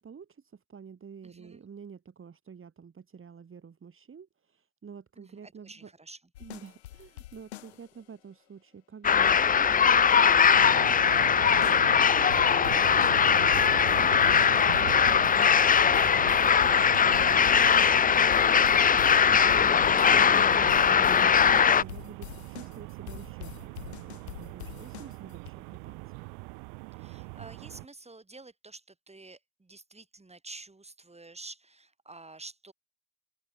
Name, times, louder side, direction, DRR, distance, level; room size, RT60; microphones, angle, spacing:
voice 1, 0.0-5.9 6.4-13.9 14.4-15.7 16.4-17.6 19.3-26.0, right 6 dB, 40° right, 4.2 m, -48 dB
voice 2, 1.2-1.6 5.2-6.2 26.9-32.7, right 3 dB, 20° right, 7.4 m, -49 dB
sound 1, 6.4-8.0 11.6-11.9 12.3-25.5, left 15 dB, 90° left, 3.5 m, -44 dB
sound 2, 9.0-21.8, left 7 dB, 25° left, 0.6 m, -21 dB
sound 3, 10.5-27.9, right 40 dB or more, 80° right, 2.1 m, -41 dB
hypercardioid pair, 50°, 32 cm